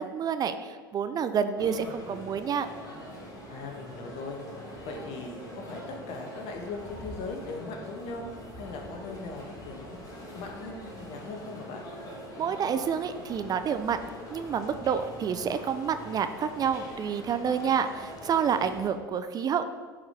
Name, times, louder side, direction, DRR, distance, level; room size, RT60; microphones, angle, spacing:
voice 1, 0.0-2.7 12.4-14.0 14.3-19.6, right 7 dB, 35° right, 10 dB, 0.5 m, -28 dB
sound 1, 1.6-18.9, equal, 30° left, 2.6 m, -43 dB
voice 2, 3.5-4.4 4.8-8.3 8.5-11.8, left 3 dB, 55° left, 2 dB, 1.6 m, -39 dB
10.5 x 5.2 x 4.3 m, 1.5 s
hypercardioid pair, 80°, 12 cm